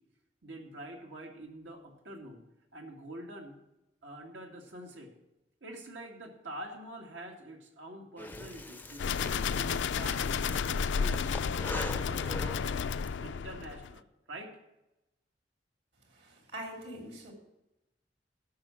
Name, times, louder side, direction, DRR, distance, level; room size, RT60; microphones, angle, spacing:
voice 1, 0.4-2.4 2.7-3.6 4.0-5.1 5.6-11.2 11.7-12.8 13.2-14.6, right 1 dB, 85° right, 1 dB, 2.2 m, -46 dB
Breathing, 8.2-13.1, left 2 dB, 10° left, 0.4 m, -43 dB
sound 1, 9.0-14.0, left 6 dB, 75° left, 0.4 m, -32 dB
voice 2, 16.1-17.3, right 1 dB, 65° right, 1 dB, 3.2 m, -43 dB
12.5 x 6.3 x 7.1 m, 0.92 s
head